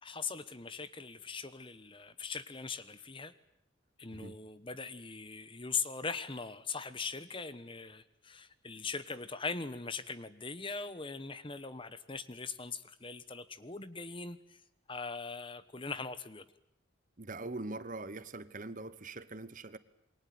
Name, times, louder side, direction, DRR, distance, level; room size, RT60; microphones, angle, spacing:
voice 1, 0.0-3.3 4.0-14.6 14.9-16.5, left 5 dB, 25° left, 14 dB, 1.1 m, -40 dB
voice 2, 17.2-19.8, right 2 dB, 40° right, 15 dB, 1.1 m, -42 dB
27.5 x 23.0 x 9.4 m, 0.72 s
head